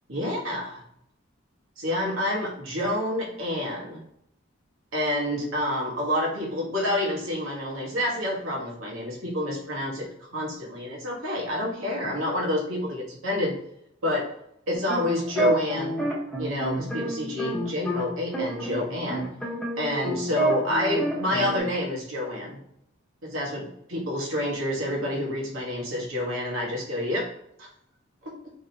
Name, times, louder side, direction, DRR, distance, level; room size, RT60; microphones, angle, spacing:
voice 1, 0.1-0.8 1.8-4.0 4.9-13.6 14.0-14.3 14.7-16.0 16.4-19.3 19.8-22.6 23.2-27.3 27.6-27.7 28.2-28.3, left 1 dB, 90° right, -3 dB, 1.3 m, -28 dB
sound 1, 14.7-18.0 18.3-21.6, right 1 dB, 5° left, 0.8 m, -29 dB
3.6 x 3.2 x 2.7 m, 0.77 s
head